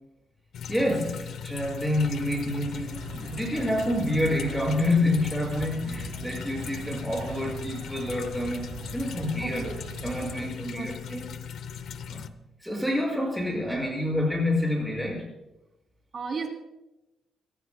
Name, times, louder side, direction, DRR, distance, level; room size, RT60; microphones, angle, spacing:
sound 1, 0.5-12.3, left 7 dB, 70° left, 0.7 m, -39 dB
voice 1, 0.7-9.7 10.0-11.4 12.1-12.3 12.6-15.3, left 1 dB, ahead, -1 dB, 6.3 m, -28 dB
sound 2, 1.9-10.5, right 5 dB, 75° right, 2.0 m, -42 dB
voice 2, 9.4-9.8 10.3-10.5 10.7-10.9 16.1-16.5, right 5 dB, 45° right, 3 dB, 3.2 m, -34 dB
27.0 x 14.5 x 2.3 m, 0.94 s
cardioid pair, 115°, 0 cm